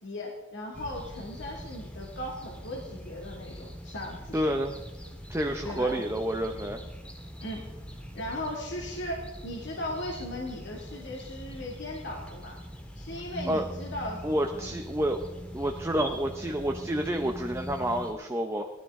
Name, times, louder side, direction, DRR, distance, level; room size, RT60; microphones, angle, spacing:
voice 1, 0.0-4.5 5.6-6.0 7.4-7.6 8.1-12.6 13.0-14.2 14.5-14.7, left 1 dB, 65° left, -2 dB, 2.3 m, -37 dB
sound 1, 0.7-18.1, equal, 5° left, 1.7 m, -42 dB
voice 2, 4.3-4.8 5.3-6.8 13.4-13.6 14.2-15.2 15.5-18.7, right 1 dB, 15° right, 3 dB, 0.8 m, -29 dB
18.0 x 12.0 x 3.8 m, 1.1 s
head